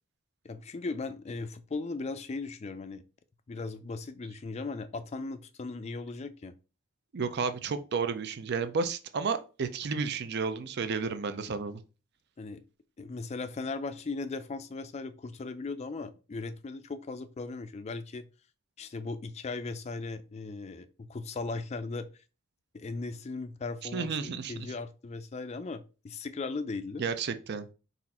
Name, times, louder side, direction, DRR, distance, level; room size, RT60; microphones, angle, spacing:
voice 1, 0.4-3.0 3.5-6.5 12.4-12.6 13.0-18.3 18.8-22.1 22.7-27.0, left 3 dB, 30° left, 0.4 m, -38 dB
voice 2, 7.1-11.8 23.9-24.7 27.0-27.7, right 5 dB, 55° right, 0.5 m, -32 dB
4.1 x 2.5 x 4.2 m
head